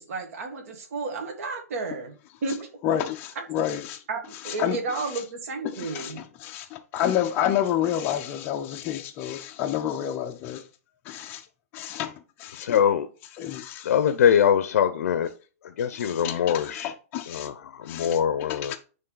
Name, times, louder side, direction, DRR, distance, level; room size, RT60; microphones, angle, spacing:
voice 1, 0.0-2.1 2.4-2.7 4.1-6.2, right 4 dB, 60° right, 1.7 m, -32 dB
voice 2, 2.8-4.0 4.3-5.2 5.6-10.7 11.0-11.5 11.7-12.8 13.4-13.9 16.0-17.5 17.8-18.2 18.5-18.8, left 10 dB, 25° left, 0.5 m, -30 dB
voice 3, 12.5-13.1 13.8-15.3 15.6-16.9 17.3-18.8, left 8 dB, 65° left, 0.6 m, -23 dB
9.0 x 3.3 x 3.9 m
hypercardioid pair, 165°, 9 cm